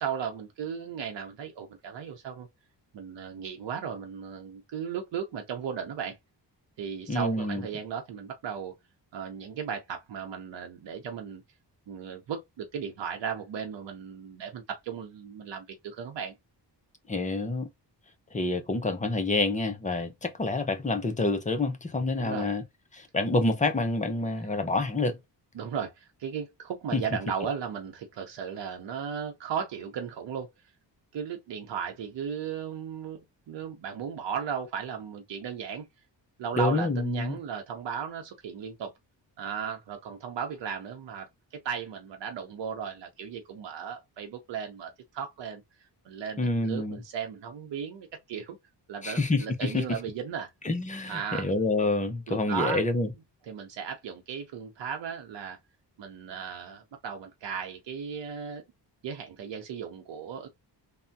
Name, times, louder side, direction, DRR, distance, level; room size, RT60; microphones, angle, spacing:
voice 1, 0.0-2.5 2.9-6.2 6.8-8.7 9.1-11.4 11.9-16.3 22.2-22.5 25.5-30.5 31.1-35.9 36.4-38.9 39.4-48.6 48.9-50.5 51.1-51.5 52.3-52.8 53.5-55.6 56.0-58.6 59.0-60.5, right 7 dB, 85° right, 0.7 m, -36 dB
voice 2, 7.1-7.7 17.1-17.7 18.3-22.6 22.9-25.2 26.9-27.0 36.6-37.4 46.4-47.0 49.0-50.0 50.6-53.1, left 2 dB, 20° left, 0.5 m, -27 dB
3.3 x 2.1 x 2.5 m
wide cardioid pair, 150°, 42 cm